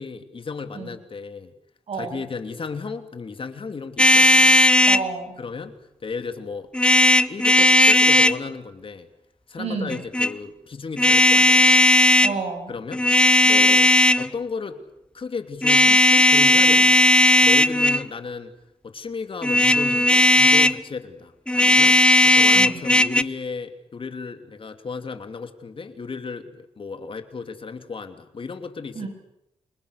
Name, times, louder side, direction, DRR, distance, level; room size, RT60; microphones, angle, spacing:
voice 1, 0.0-1.5 1.9-4.6 5.4-5.7 6.0-6.7 7.3-9.1 9.5-11.9 12.7-13.1 13.4-14.8 15.1-17.1 17.4-18.5 18.8-22.0 22.2-29.1, left 5 dB, 55° left, 8 dB, 2.9 m, -34 dB
voice 2, 1.9-2.2 4.9-5.4 9.6-10.0 12.2-12.7 22.5-22.8 28.9-29.1, right 4 dB, 75° right, 5 dB, 8.0 m, -30 dB
sound 1, 4.0-5.1 6.7-8.4 9.9-10.3 11.0-12.3 12.9-14.3 15.6-18.1 19.4-20.8 21.5-23.2, left 1 dB, 10° left, 1.0 m, -16 dB
29.0 x 26.0 x 6.7 m, 0.82 s
cardioid pair, 60°, 11 cm